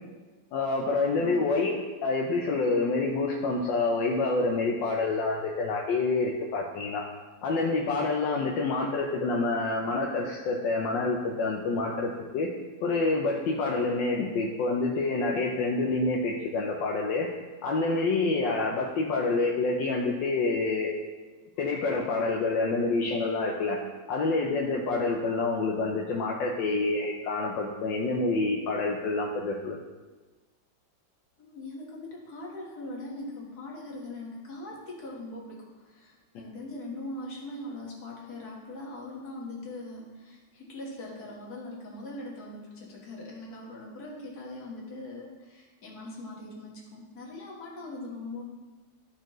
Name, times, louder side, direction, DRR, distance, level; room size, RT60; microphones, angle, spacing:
voice 1, 0.5-7.0 7.4-12.5 12.8-17.3 17.6-21.0 21.6-23.8 24.1-29.8, left 3 dB, 80° left, -1 dB, 1.4 m, -27 dB
voice 2, 1.2-1.5 31.4-48.4, left 2 dB, 55° left, -3 dB, 1.9 m, -41 dB
13.0 x 4.4 x 3.0 m, 1.3 s
omnidirectional pair, 2.0 m